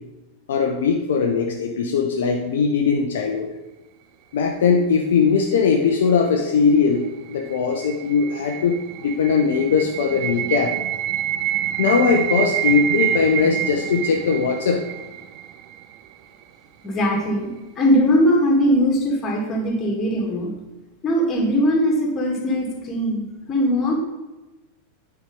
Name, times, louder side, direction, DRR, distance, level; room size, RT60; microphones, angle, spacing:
voice 1, 0.5-3.5 4.3-7.0 7.3-10.7 11.8-14.8, left 5 dB, 60° left, 2 dB, 0.7 m, -20 dB
sound 1, 7.1-16.1, right 12 dB, 40° right, 0.5 m, -27 dB
voice 2, 16.8-20.5 21.0-23.9, equal, 25° left, 0 dB, 2.3 m, -20 dB
8.9 x 4.8 x 5.3 m, 1.1 s
figure-of-eight pair, 90°, 0 cm